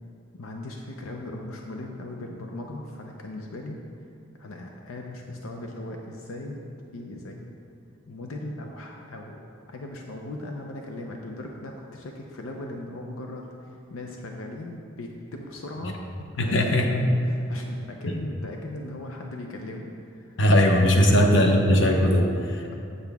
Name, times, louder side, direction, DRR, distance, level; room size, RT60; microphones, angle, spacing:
voice 1, 0.3-3.8 4.4-6.7 6.9-7.5 8.1-9.4 9.7-16.0 16.3-20.4 20.8-21.4, left 1 dB, 85° left, 1 dB, 0.6 m, -38 dB
voice 2, 16.4-16.9 18.1-18.2 20.4-22.7, equal, 60° left, 1 dB, 0.9 m, -19 dB
8.0 x 7.8 x 3.5 m, 2.5 s
head